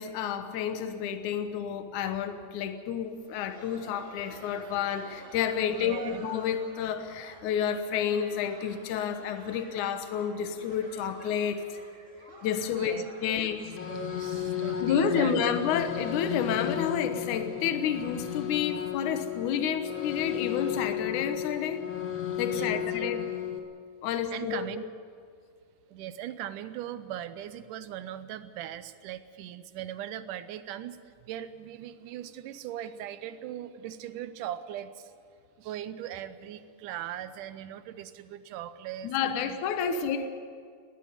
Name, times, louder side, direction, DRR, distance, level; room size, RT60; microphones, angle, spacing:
voice 1, 0.0-11.6 12.4-13.6 14.8-21.8 22.4-23.2 24.0-24.7 39.0-40.3, left 8 dB, 70° left, 8 dB, 2.5 m, -30 dB
Laughter, 3.1-18.7 18.9-19.0 19.6-19.8 20.3-20.5 21.6-21.7, right 1 dB, 25° right, 2.2 m, -52 dB
voice 2, 5.7-6.2 12.8-13.5 13.9-15.5 22.4-23.1 24.1-24.8 25.9-35.1 35.6-39.1 39.4-39.6, right 11 dB, 75° right, 13 dB, 2.2 m, -39 dB
sound 1, 13.6-23.6, left 10 dB, 45° left, 1.9 m, -33 dB
20.0 x 13.5 x 10.0 m, 2.1 s
omnidirectional pair, 3.9 m